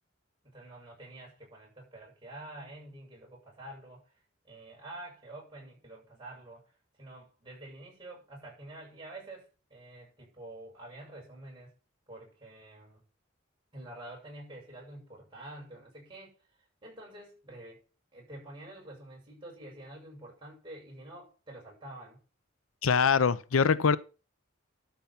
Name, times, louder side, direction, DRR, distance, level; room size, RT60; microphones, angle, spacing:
voice 1, 0.4-4.1 4.4-6.6 7.0-11.7 12.1-13.0 13.7-16.4 16.8-17.8 18.1-22.2, right 1 dB, 25° right, 7.5 m, -48 dB
voice 2, 22.8-24.0, left 5 dB, 90° left, 0.6 m, -23 dB
12.5 x 5.6 x 5.9 m
head